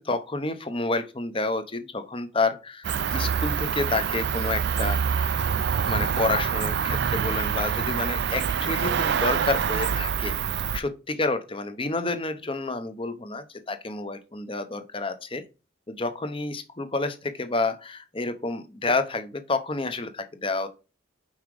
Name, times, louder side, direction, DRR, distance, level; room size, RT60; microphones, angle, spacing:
voice 1, 0.0-5.0 5.9-15.4 15.9-20.7, left 3 dB, 25° left, 0.8 m, -29 dB
Cricket, 2.8-10.8, right 7 dB, 55° right, 0.4 m, -26 dB
5.6 x 4.9 x 4.8 m
head